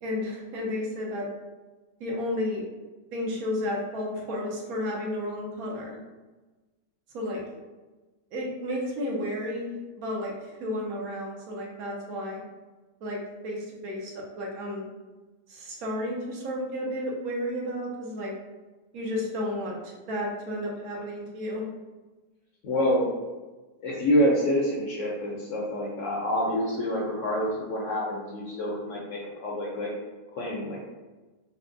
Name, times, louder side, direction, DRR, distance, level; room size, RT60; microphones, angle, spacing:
voice 1, 0.0-1.3 2.0-2.6 3.1-5.9 7.1-7.4 8.3-12.4 13.0-13.2 13.4-14.9 15.5-18.3 18.9-21.6, left 1 dB, 65° right, -2 dB, 1.1 m, -32 dB
voice 2, 22.6-23.1 23.8-29.9 30.3-30.8, equal, 65° left, -3 dB, 0.8 m, -27 dB
4.2 x 2.1 x 2.6 m, 1.2 s
omnidirectional pair, 1.7 m